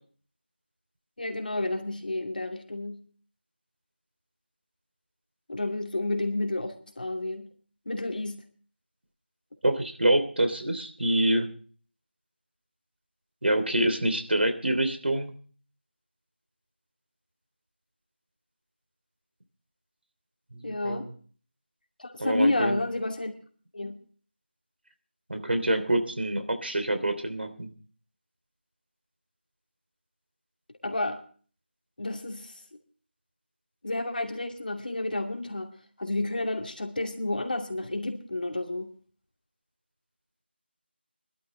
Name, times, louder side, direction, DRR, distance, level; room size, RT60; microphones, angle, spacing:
voice 1, 1.2-3.0 5.5-7.5 7.9-8.4 20.6-21.1 22.0-23.3 23.7-24.0 30.8-31.2 32.0-32.5 33.8-35.7 36.0-38.9, left 2 dB, 50° left, 3 dB, 2.5 m, -30 dB
voice 2, 9.6-11.5 13.4-15.3 20.5-21.1 22.2-22.8 25.3-27.7, right 1 dB, 70° right, 7 dB, 3.0 m, -26 dB
21.5 x 12.5 x 3.2 m, 0.43 s
figure-of-eight pair, 170°, 6 cm